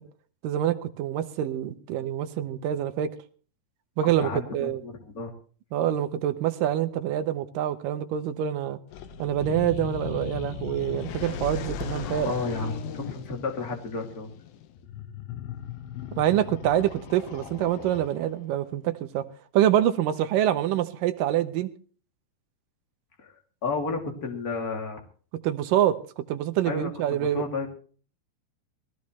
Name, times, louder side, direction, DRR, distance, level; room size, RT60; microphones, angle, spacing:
voice 1, 0.4-3.1 4.0-4.8 5.7-8.8 9.2-12.3 16.2-19.2 19.5-21.7 25.4-27.4, right 11 dB, 75° right, 9 dB, 2.5 m, -26 dB
voice 2, 4.2-5.3 12.2-14.3 23.2-23.3 23.6-25.0 26.6-27.7, left 4 dB, 30° left, 2 dB, 2.7 m, -32 dB
sound 1, 8.9-18.4, left 10 dB, 90° left, 2.9 m, -37 dB
21.0 x 16.0 x 3.2 m, 0.41 s
omnidirectional pair, 4.1 m